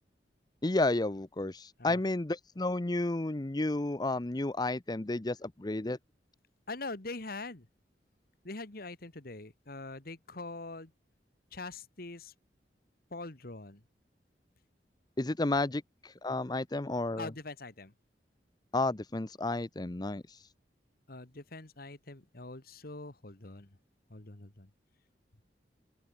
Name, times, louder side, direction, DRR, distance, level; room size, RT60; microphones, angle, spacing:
voice 1, 0.6-6.0 15.2-17.3 18.7-20.4, left 2 dB, 25° left, 0.7 m, -32 dB
voice 2, 6.7-7.7 8.4-10.9 11.5-12.3 13.1-13.8 17.2-17.9 21.1-23.8 24.1-24.7, left 3 dB, 55° left, 1.9 m, -43 dB
open air
head